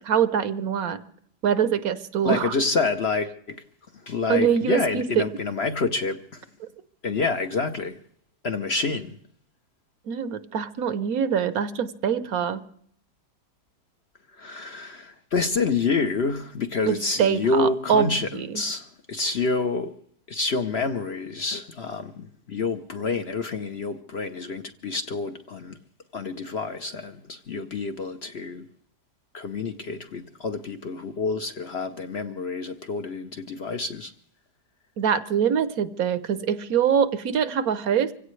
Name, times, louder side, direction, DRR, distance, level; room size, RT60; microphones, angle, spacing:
voice 1, 0.0-1.0 1.4-2.6 4.3-5.2 6.6-6.7 10.1-12.6 16.9-18.5 35.0-38.1, right 8 dB, 65° right, 1.2 m, -24 dB
voice 2, 2.2-3.6 4.1-6.4 7.0-8.0 8.4-9.2 14.4-19.9 20.3-25.8 26.1-28.7 29.3-34.1, left 4 dB, 50° left, 0.9 m, -28 dB
25.5 x 16.5 x 3.2 m
omnidirectional pair, 1.8 m